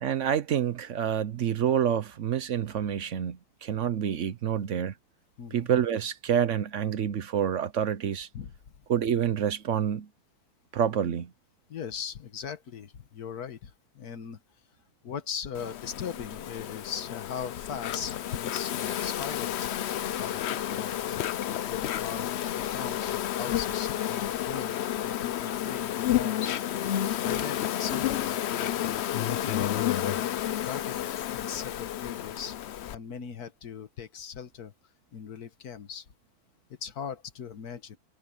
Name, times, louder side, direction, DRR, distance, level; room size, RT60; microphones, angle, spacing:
voice 1, 0.0-4.9 5.5-8.3 8.9-10.1 10.7-11.3, right 9 dB, 60° right, 1.0 m, -27 dB
voice 2, 5.4-5.7 8.3-8.5 11.7-14.4 15.0-19.7 20.2-20.9 21.6-22.3 22.7-26.6 27.2-32.6 32.9-34.7 35.1-36.1 36.8-38.0, left 7 dB, 85° left, 1.8 m, -39 dB
Insect, 15.5-33.0, left 11 dB, 60° left, 0.7 m, -31 dB
omnidirectional pair, 1.6 m